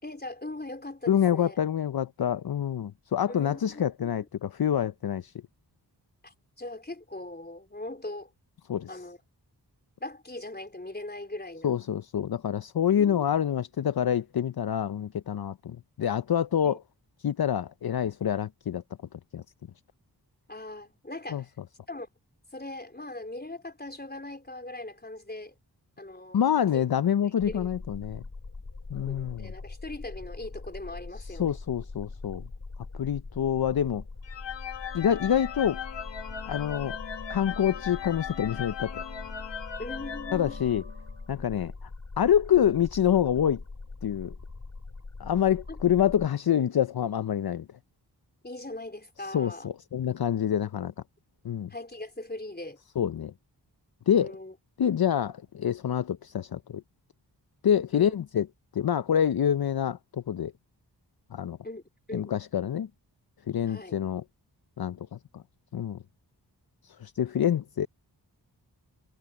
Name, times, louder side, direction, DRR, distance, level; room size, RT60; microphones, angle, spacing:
voice 1, 0.0-1.6 3.3-4.2 6.2-8.3 8.9-9.2 10.0-11.7 13.0-13.2 16.6-16.8 20.5-21.5 21.9-22.1 22.5-25.6 26.0-26.4 26.7-26.8 27.5-27.7 29.1-31.6 39.8-40.6 45.7-45.8 48.4-49.7 51.7-52.8 54.1-54.5 57.9-58.1 61.6-61.8 62.1-62.3 63.7-64.0, left 2 dB, 25° left, 4.1 m, -40 dB
voice 2, 1.1-5.3 8.7-9.0 11.6-16.8 17.2-18.8 19.3-19.4 21.3-21.4 26.3-28.2 28.9-29.5 31.4-32.4 32.9-34.0 34.9-35.8 36.5-37.0 37.3-39.0 40.3-40.8 41.3-41.9 42.2-43.6 44.0-44.3 45.2-47.7 49.3-50.9 51.4-51.7 53.0-53.3 54.1-54.3 54.8-56.8 57.6-58.5 58.7-60.5 61.3-61.6 62.1-62.9 63.5-64.2 64.8-65.4 65.7-66.0 66.8-67.9, left 9 dB, 60° left, 0.7 m, -26 dB
sound 1, 27.4-46.3, left 3 dB, 45° left, 3.1 m, -42 dB
sound 2, 34.2-41.2, left 8 dB, 90° left, 1.4 m, -38 dB
cardioid pair, 40°, 42 cm